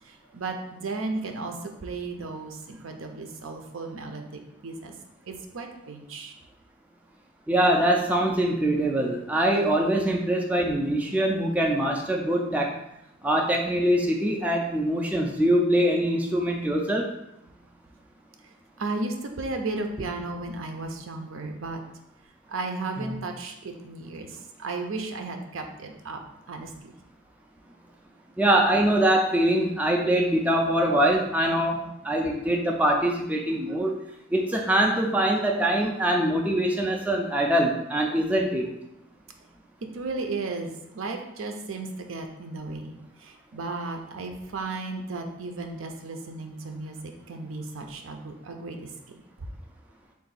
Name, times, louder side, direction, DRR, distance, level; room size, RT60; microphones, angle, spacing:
voice 1, 0.0-4.9 5.3-6.3 18.8-21.8 22.5-26.2 26.5-26.9 33.7-33.8 39.9-48.9 49.4-49.5, right 3 dB, 75° right, 4 dB, 0.5 m, -34 dB
voice 2, 7.5-12.8 13.2-17.1 23.1-23.2 28.4-33.9 34.3-38.7, right 1 dB, 5° right, 0 dB, 0.3 m, -23 dB
3.7 x 2.5 x 4.0 m, 0.84 s
head